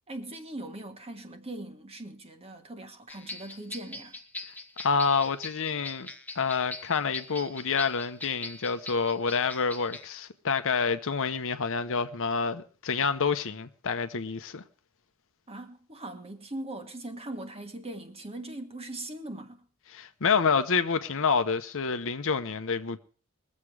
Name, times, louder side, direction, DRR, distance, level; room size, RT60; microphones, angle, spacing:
voice 1, 0.1-4.2 15.5-19.6, right 1 dB, 25° right, 1.5 m, -40 dB
sound 1, 3.1-10.1, left 2 dB, 5° left, 0.9 m, -42 dB
voice 2, 4.8-6.1 6.4-14.6 19.9-23.0, left 5 dB, 60° left, 0.9 m, -28 dB
21.5 x 7.5 x 4.8 m
head